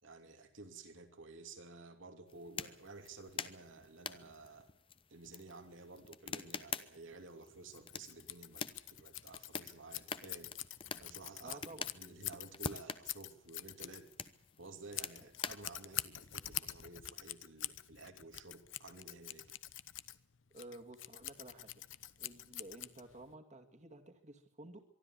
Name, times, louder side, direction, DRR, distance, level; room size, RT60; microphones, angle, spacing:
voice 1, 0.0-4.7 5.1-10.5 11.0-11.6 11.9-14.1 14.6-19.5, right 3 dB, 75° right, 6 dB, 2.8 m, -53 dB
sound 1, 2.3-16.6, left 5 dB, 30° left, 0.9 m, -47 dB
Scissors, 7.7-23.3, left 14 dB, 70° left, 0.9 m, -46 dB
voice 2, 11.4-11.9 15.2-15.3 20.5-21.9 22.2-24.8, right 2 dB, 40° right, 5 dB, 2.3 m, -52 dB
24.0 x 12.5 x 9.8 m, 0.67 s
head